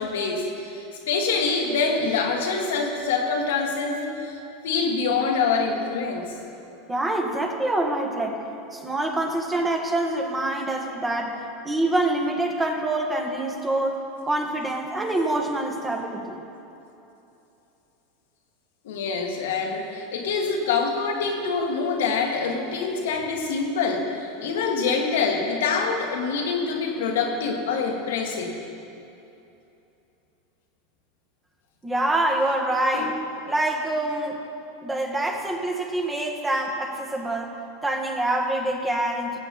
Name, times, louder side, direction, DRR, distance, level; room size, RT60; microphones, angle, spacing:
voice 1, 0.0-4.4 4.6-6.3 18.8-28.5 32.9-33.1, left 4 dB, 70° left, 1 dB, 1.6 m, -25 dB
voice 2, 6.9-8.4 8.7-16.4 31.8-33.2 33.5-34.4 34.8-39.4, right 1 dB, 15° right, 2 dB, 1.6 m, -26 dB
18.5 x 7.9 x 4.2 m, 2.9 s
hypercardioid pair, 90°, 0 cm